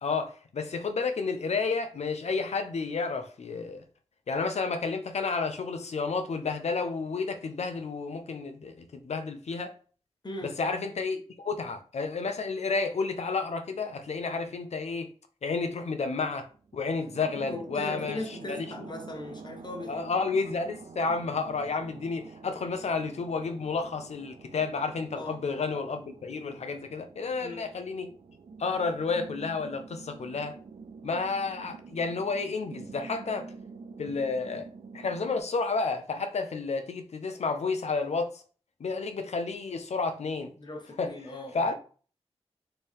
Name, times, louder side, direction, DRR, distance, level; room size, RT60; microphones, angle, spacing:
voice 1, 0.0-3.8 4.3-9.7 10.6-15.1 15.4-16.5 16.7-18.7 19.9-28.1 28.6-30.5 31.0-33.5 34.0-34.7 34.9-38.4 38.8-40.5 41.0-41.1 41.5-41.7, left 4 dB, 85° left, 0.7 m, -31 dB
voice 2, 10.2-10.5 17.5-20.1 25.1-25.4 27.4-27.6 40.6-41.7, left 2 dB, 40° left, 1.2 m, -39 dB
sound 1, 16.3-35.4, right 5 dB, 75° right, 0.6 m, -47 dB
4.4 x 3.3 x 3.5 m
wide cardioid pair, 70°, 11 cm